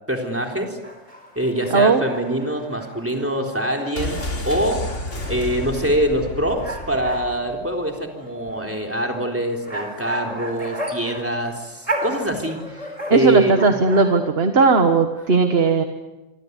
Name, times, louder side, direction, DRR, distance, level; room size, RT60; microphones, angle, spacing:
voice 1, 0.1-0.8 1.4-13.8, right 1 dB, 10° right, 2 dB, 3.8 m, -24 dB
sound 1, 0.8-14.2, right 1 dB, 30° right, 4.4 m, -34 dB
voice 2, 1.7-2.0 13.1-15.8, right 4 dB, 55° right, 7 dB, 1.7 m, -17 dB
sound 2, 4.0-7.7 8.0-8.1, left 1 dB, 75° left, 4.0 m, -31 dB
26.5 x 25.0 x 8.3 m, 1.1 s
omnidirectional pair, 1.2 m